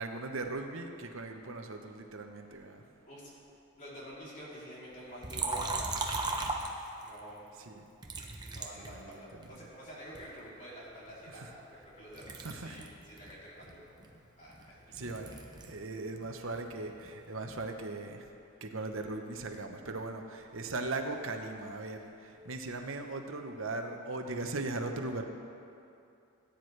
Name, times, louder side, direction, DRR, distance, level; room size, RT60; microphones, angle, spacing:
voice 1, 0.0-2.8 7.7-7.8 8.8-9.1 11.4-11.5 12.4-12.8 14.9-15.3 15.6-18.3 18.6-25.2, right 2 dB, 60° right, 5 dB, 0.9 m, -38 dB
voice 2, 3.8-7.5 8.4-13.9 14.4-15.2, equal, 35° left, -8 dB, 3.2 m, -48 dB
Liquid, 5.2-7.2 8.0-9.6 10.1-11.9 12.1-15.8 16.1-17.7, right 3 dB, 20° right, 0.7 m, -38 dB
18.0 x 9.6 x 3.3 m, 2.7 s
head